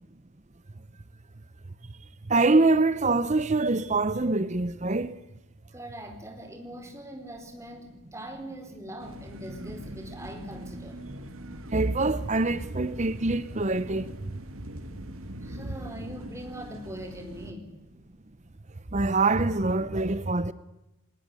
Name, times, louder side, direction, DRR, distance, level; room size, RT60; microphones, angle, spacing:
voice 1, 2.3-5.2 11.7-14.1 18.9-20.5, right 3 dB, 35° right, 0.8 m, -24 dB
voice 2, 5.7-11.0 15.4-17.8, right 1 dB, 15° right, 4.3 m, -41 dB
sound 1, 9.0-17.5, right 1 dB, 80° right, 2.5 m, -42 dB
20.0 x 19.5 x 9.7 m
head